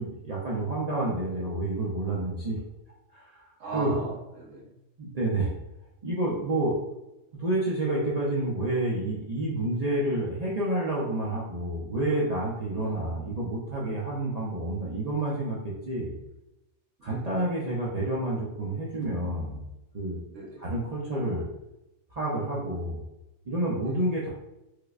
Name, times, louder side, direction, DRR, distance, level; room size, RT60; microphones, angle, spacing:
voice 1, 0.0-2.6 3.1-3.9 5.0-5.5 6.0-6.8 7.4-16.1 17.0-19.6 19.9-20.2 20.6-21.4 22.1-23.0 23.5-24.3, right 1 dB, 45° right, -6 dB, 0.5 m, -29 dB
voice 2, 3.6-4.7 12.8-12.9 17.0-17.3 20.3-20.7 23.8-24.0, right 3 dB, 75° right, -4 dB, 1.4 m, -38 dB
4.7 x 2.1 x 2.4 m, 0.93 s
omnidirectional pair, 1.3 m